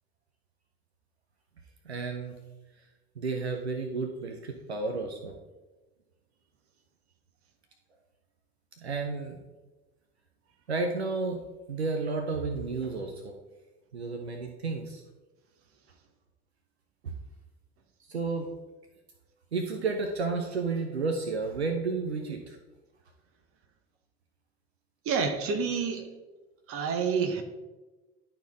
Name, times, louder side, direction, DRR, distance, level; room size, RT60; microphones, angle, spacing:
voice 1, 1.8-2.4 3.2-5.4 8.8-9.4 10.7-11.4 11.7-13.3 13.9-15.0 17.0-17.1 18.1-18.5 19.5-22.6, right 4 dB, 80° right, 4 dB, 0.7 m, -32 dB
voice 2, 25.0-26.1 26.7-27.4, right 5 dB, 45° right, 6 dB, 1.2 m, -28 dB
11.0 x 4.3 x 3.9 m, 1.2 s
figure-of-eight pair, 60°, 32 cm